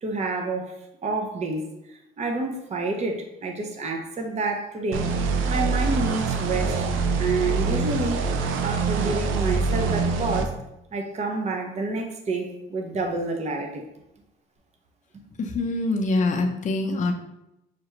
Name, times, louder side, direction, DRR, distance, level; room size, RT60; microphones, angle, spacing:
voice 1, 0.0-5.1 5.5-6.9 7.2-8.2 8.6-10.6 10.9-13.8, right 3 dB, 35° right, 2 dB, 0.7 m, -28 dB
sound 1, 4.9-10.4, right 4 dB, 85° right, 0.5 m, -25 dB
voice 2, 15.4-17.1, left 2 dB, 40° left, 2 dB, 0.6 m, -24 dB
5.9 x 2.3 x 3.0 m, 0.87 s
cardioid pair, 90°, 20 cm